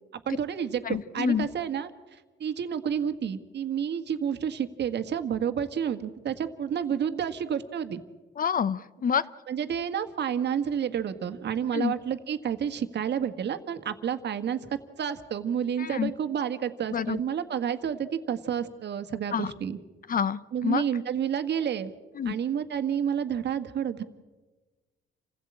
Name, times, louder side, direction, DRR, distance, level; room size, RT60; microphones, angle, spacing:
voice 1, 0.2-1.9 2.4-8.0 9.5-19.8 20.5-21.9 22.2-24.0, right 8 dB, 60° right, 9 dB, 1.6 m, -30 dB
voice 2, 0.8-1.5 8.4-9.2 11.7-11.9 15.8-16.1 16.9-17.2 19.3-19.5 20.1-20.8 22.2-22.4, left 7 dB, 45° left, 17 dB, 0.9 m, -27 dB
27.5 x 16.0 x 8.7 m, 1.3 s
cardioid pair, 90°, 20 cm